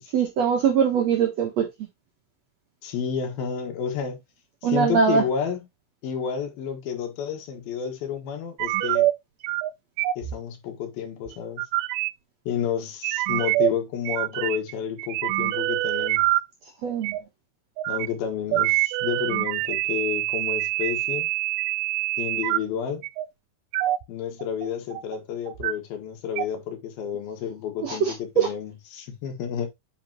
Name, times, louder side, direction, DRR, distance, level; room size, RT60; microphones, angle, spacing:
voice 1, 0.1-1.7 4.6-5.2 16.8-17.2 27.8-28.5, right 7 dB, 65° right, 1.8 m, -22 dB
voice 2, 2.8-4.2 4.6-5.6 6.0-9.1 10.2-11.6 12.5-16.3 17.9-21.3 22.2-23.0 24.1-29.7, left 8 dB, 75° left, 3.4 m, -30 dB
sound 1, 8.6-9.1 9.4-9.7 10.0-10.3 11.3-12.1 13.0-13.7 14.1-14.7 15.0-16.4 17.0-17.2 17.8-18.1 18.5-22.6 23.0-23.3 23.7-24.0 24.4-25.2 25.5-25.7 26.4-26.5, right 17 dB, 85° right, 2.4 m, -25 dB
8.6 x 5.1 x 2.9 m
omnidirectional pair, 4.3 m